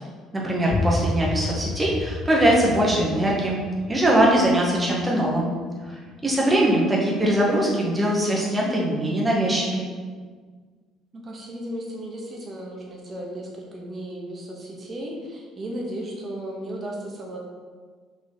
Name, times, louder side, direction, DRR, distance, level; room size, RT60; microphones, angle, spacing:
voice 1, 0.3-3.6 3.9-5.5 5.9-9.9, right 1 dB, 20° right, -3 dB, 1.8 m, -21 dB
sound 1, 0.7-6.3, left 2 dB, 35° left, 0.5 m, -31 dB
voice 2, 11.1-17.4, right 1 dB, 35° right, -2 dB, 1.7 m, -35 dB
5.6 x 5.2 x 4.0 m, 1.5 s
supercardioid pair, 90°, 0 cm